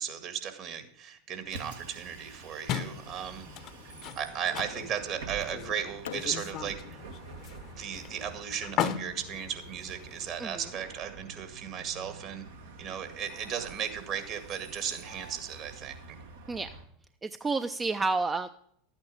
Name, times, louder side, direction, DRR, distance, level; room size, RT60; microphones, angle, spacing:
voice 1, 0.0-3.5 4.2-7.0 7.7-12.4 12.8-16.2, right 8 dB, 50° right, 8 dB, 2.0 m, -36 dB
Bus, 1.4-16.9, right 4 dB, 80° right, 1.7 m, -47 dB
sound 1, 2.7-10.4, left 10 dB, 45° left, 0.8 m, -38 dB
Fireworks, 4.6-5.2 6.0-9.2, left 9 dB, 80° left, 0.5 m, -49 dB
voice 2, 17.2-18.5, right 3 dB, 20° right, 10 dB, 0.5 m, -30 dB
12.0 x 8.8 x 5.0 m, 0.68 s
hypercardioid pair, 90°, 0 cm